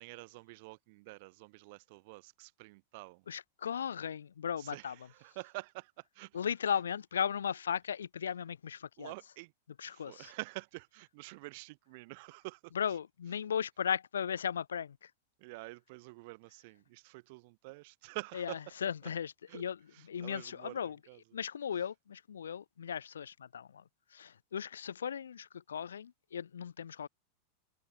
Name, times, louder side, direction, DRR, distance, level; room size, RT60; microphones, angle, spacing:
voice 1, 0.0-3.3 4.6-6.4 9.0-9.5 9.8-12.7 15.4-18.6 19.5-19.6 19.9-21.2, right 25 dB, 50° right, 6.7 m, -47 dB
voice 2, 3.3-4.9 6.3-9.1 9.8-10.3 12.7-15.1 18.3-19.8 20.1-21.0 21.3-27.1, left 8 dB, 70° left, 1.1 m, -37 dB
figure-of-eight pair, 90°, 0 cm